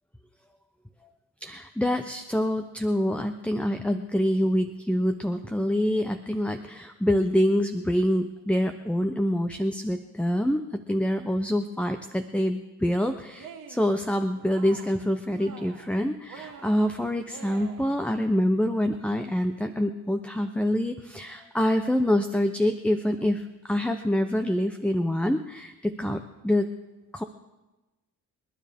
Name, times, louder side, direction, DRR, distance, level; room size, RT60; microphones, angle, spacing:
voice 1, 1.4-26.7 27.1-27.2, equal, 5° left, 7 dB, 0.8 m, -26 dB
Cheering, 13.3-13.9 14.3-15.0 15.3-15.9 16.3-18.0, right 6 dB, 75° right, 2.5 m, -46 dB
29.0 x 10.0 x 3.6 m, 1.1 s
cardioid pair, 75°, 34 cm